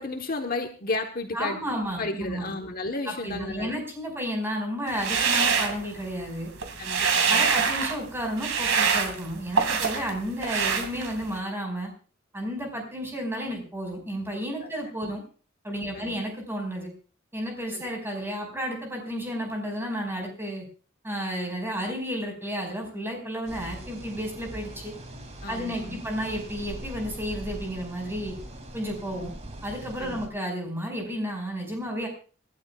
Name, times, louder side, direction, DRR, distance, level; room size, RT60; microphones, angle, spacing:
voice 1, 0.0-3.7 6.8-7.5 14.6-14.7 15.9-16.1 17.7-17.8 25.4-26.0 30.0-30.2, left 2 dB, 45° left, 4 dB, 1.2 m, -33 dB
voice 2, 1.3-2.5 3.1-6.5 7.3-11.9 12.3-15.2 15.6-16.9 17.3-20.6 21.0-24.9 25.5-28.4 28.7-29.3 29.6-32.1, equal, 10° right, 2 dB, 5.3 m, -32 dB
sound 1, 4.9-6.3 6.6-8.0 8.4-10.1 10.4-11.4, right 5 dB, 80° right, 2.2 m, -25 dB
sound 2, 23.5-30.3, right 1 dB, 35° right, 2.6 m, -41 dB
27.5 x 12.0 x 2.4 m, 0.38 s
head